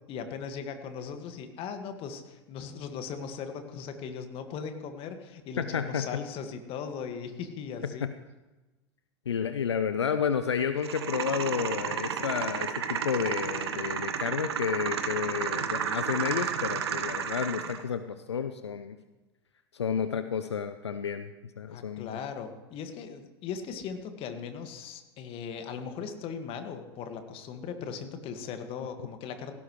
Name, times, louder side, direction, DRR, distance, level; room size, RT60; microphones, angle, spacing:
voice 1, 0.1-8.1 21.7-29.5, left 6 dB, 40° left, 7 dB, 1.8 m, -38 dB
voice 2, 5.6-6.1 8.0-8.1 9.3-19.0 19.7-21.3 21.6-22.2, left 7 dB, 80° left, 11 dB, 0.6 m, -31 dB
sound 1, 10.8-17.8, right 7 dB, 70° right, 1.3 m, -32 dB
18.0 x 16.0 x 3.2 m, 1.1 s
figure-of-eight pair, 90°, 14 cm